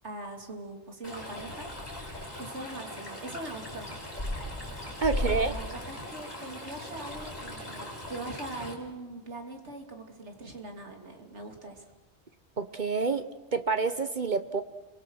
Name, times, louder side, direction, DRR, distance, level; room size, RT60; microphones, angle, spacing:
voice 1, 0.0-1.7 2.4-3.9 5.1-11.8, right 2 dB, 85° right, 3 dB, 3.1 m, -41 dB
Stream, 1.0-8.7, left 1 dB, 35° left, 4.8 m, -38 dB
voice 2, 5.0-5.5 12.6-13.2 13.5-14.6, right 4 dB, 45° right, 10 dB, 1.0 m, -28 dB
29.5 x 24.0 x 6.4 m, 1.1 s
omnidirectional pair, 1.1 m